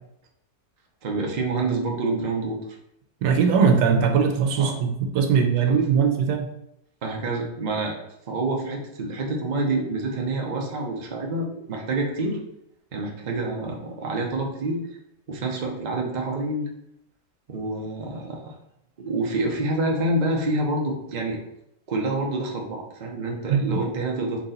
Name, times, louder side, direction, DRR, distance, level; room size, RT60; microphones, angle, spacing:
voice 1, 1.0-2.6 4.6-4.8 5.7-5.8 7.0-7.9 8.3-12.4 12.9-14.8 15.3-16.7 17.5-18.4 19.0-21.4 21.9-24.5, right 2 dB, 55° right, 0 dB, 0.5 m, -27 dB
voice 2, 3.2-6.5 23.5-23.8, right 6 dB, 80° right, 4 dB, 1.3 m, -20 dB
4.2 x 2.9 x 3.9 m, 0.79 s
omnidirectional pair, 1.9 m